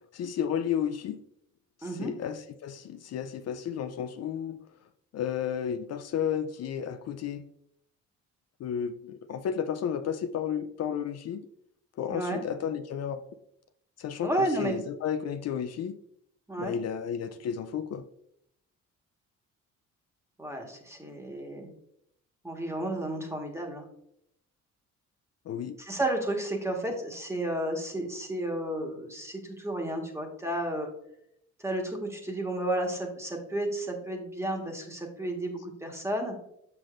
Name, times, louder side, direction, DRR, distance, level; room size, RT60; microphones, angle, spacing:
voice 1, 0.1-1.2 1.8-4.6 5.1-7.5 8.6-11.4 12.0-13.2 14.0-16.0 16.6-18.0 25.5-25.7, left 8 dB, 55° left, 9 dB, 0.4 m, -32 dB
voice 2, 1.8-2.1 12.1-12.4 14.2-14.8 16.5-16.8 20.4-21.7 22.4-23.8 25.8-30.9 31.6-36.3, right 1 dB, 10° right, 2 dB, 1.5 m, -32 dB
6.8 x 5.8 x 2.5 m, 0.75 s
cardioid pair, 90°, 30 cm